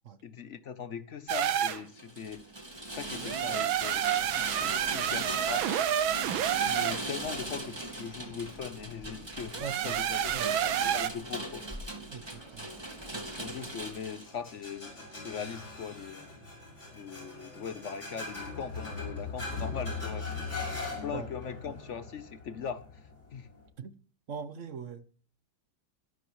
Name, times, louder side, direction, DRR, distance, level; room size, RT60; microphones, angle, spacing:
voice 1, 0.2-2.5 2.9-5.7 6.6-10.3 10.6-11.8 13.3-16.3 16.9-23.5, left 7 dB, 65° left, 0.7 m, -41 dB
sound 1, 1.3-1.8 3.2-7.0 9.5-11.1, right 10 dB, 80° right, 1.7 m, -29 dB
Rain, 1.9-14.3, right 1 dB, 15° right, 2.1 m, -40 dB
voice 2, 9.6-10.0 10.3-10.5 12.1-12.9 13.1-13.3 21.1-21.3 21.7-21.8 23.8-24.0 24.3-25.0, right 6 dB, 55° right, 0.9 m, -41 dB
sound 2, 12.4-23.7, left 3 dB, 35° left, 6.6 m, -41 dB
23.0 x 12.5 x 3.1 m
omnidirectional pair, 2.2 m